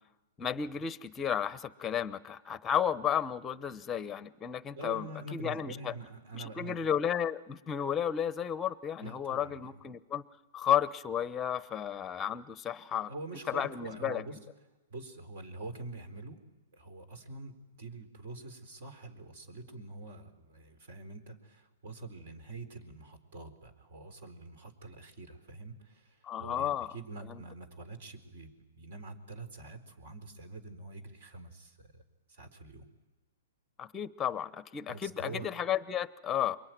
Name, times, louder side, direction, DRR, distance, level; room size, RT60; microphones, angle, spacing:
voice 1, 0.4-5.9 6.3-10.2 10.5-13.1 13.5-14.2 26.2-26.9 27.2-27.4 33.8-36.6, left 9 dB, 15° left, 15 dB, 0.8 m, -33 dB
voice 2, 4.8-6.9 9.0-9.7 12.9-14.4 14.9-16.4 16.7-32.0 32.3-32.9 34.9-35.5, right 2 dB, 55° right, 9 dB, 4.2 m, -45 dB
27.5 x 23.0 x 9.4 m, 1.2 s
hypercardioid pair, 155°, 0 cm